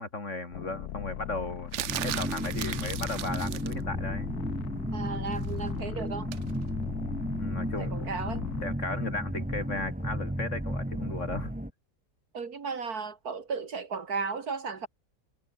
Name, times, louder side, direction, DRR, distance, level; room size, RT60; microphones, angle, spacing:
voice 1, 0.0-1.7 2.0-4.3 7.4-7.9 8.6-11.5, left 2 dB, 50° left, 3.3 m, -35 dB
sound 1, 0.5-8.7, left 11 dB, 85° left, 1.4 m, -39 dB
sound 2, 1.7-3.8 6.3-6.5, right 12 dB, 60° right, 0.9 m, -36 dB
sound 3, 1.9-11.7, equal, 5° right, 2.8 m, -34 dB
voice 2, 4.9-6.3 7.8-8.4 12.3-14.9, right 5 dB, 75° right, 2.6 m, -35 dB
omnidirectional pair, 1.6 m